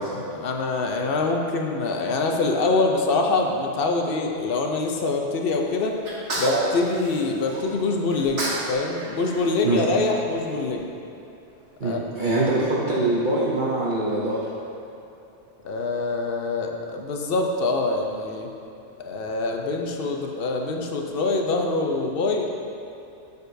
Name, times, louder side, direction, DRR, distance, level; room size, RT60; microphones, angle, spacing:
voice 1, 0.3-6.0 6.4-10.9 11.8-12.3 15.6-18.5 19.0-22.5, left 3 dB, 60° left, 2 dB, 0.7 m, -25 dB
Sneeze, 6.0-7.6 8.1-8.7 9.0-10.4, right 1 dB, 75° right, 1.5 m, -29 dB
voice 2, 11.8-14.4, right 2 dB, 50° right, -7 dB, 0.8 m, -23 dB
6.7 x 6.5 x 2.6 m, 2.8 s
omnidirectional pair, 1.2 m